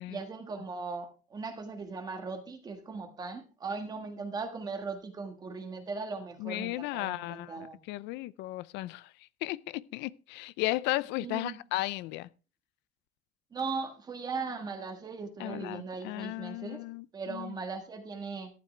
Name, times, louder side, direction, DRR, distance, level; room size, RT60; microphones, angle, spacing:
voice 1, 0.1-7.8 11.2-11.6 13.5-16.8 17.1-18.5, right 4 dB, 20° right, 1.6 m, -38 dB
voice 2, 6.4-9.1 9.4-12.3 15.4-17.6, left 18 dB, 70° left, 0.5 m, -35 dB
14.0 x 11.5 x 3.3 m
cardioid pair, 175°, 19 cm